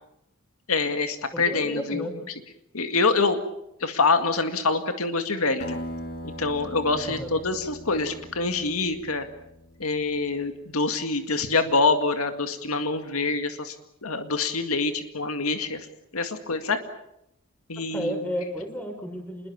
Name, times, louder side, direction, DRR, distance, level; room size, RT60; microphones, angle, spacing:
voice 1, 0.7-2.1 2.7-3.4 3.8-5.8 6.4-9.3 9.8-13.8 14.0-15.9 16.1-16.8 17.7-18.3, left 3 dB, 85° left, 7 dB, 2.1 m, -25 dB
voice 2, 1.3-2.1 6.9-7.4 17.9-19.5, equal, 10° left, 4 dB, 5.8 m, -32 dB
Acoustic guitar, 5.6-10.4, left 1 dB, 50° left, 3.5 m, -40 dB
27.0 x 21.5 x 7.4 m, 0.80 s
head